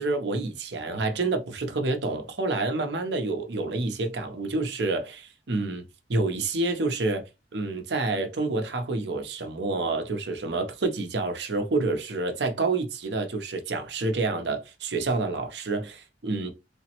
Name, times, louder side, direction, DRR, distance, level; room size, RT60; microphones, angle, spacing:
voice 1, 0.0-5.8 6.1-16.5, right 3 dB, 65° right, 0.7 m, -28 dB
3.3 x 2.0 x 2.9 m
head